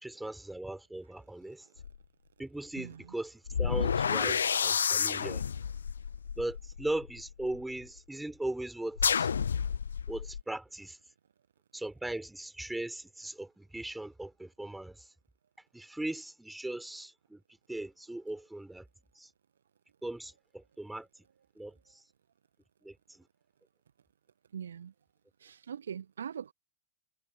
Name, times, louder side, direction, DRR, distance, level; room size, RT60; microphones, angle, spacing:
voice 1, 0.0-1.7 2.4-5.4 6.4-9.3 10.1-11.0 11.7-15.1 15.7-17.4 17.7-18.8 19.1-19.3 20.0-21.1 21.6-22.0 22.8-23.2, right 1 dB, 5° right, 5.1 m, -39 dB
sound 1, 1.8-1.9 3.5-7.6 9.0-10.4, left 7 dB, 70° left, 1.2 m, -30 dB
voice 2, 24.5-24.9 25.4-26.5, right 8 dB, 65° right, 1.4 m, -41 dB
figure-of-eight pair, 90°, 0 cm